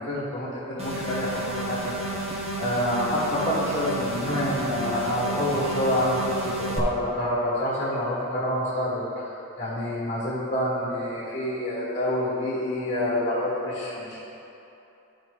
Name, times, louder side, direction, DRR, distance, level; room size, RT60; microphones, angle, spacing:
voice 1, 0.0-2.3 2.6-9.3 9.6-14.2, left 1 dB, 30° left, -10 dB, 1.7 m, -27 dB
sound 1, 0.8-6.8, right 2 dB, 30° right, 0.8 m, -32 dB
12.5 x 5.0 x 3.2 m, 2.9 s
head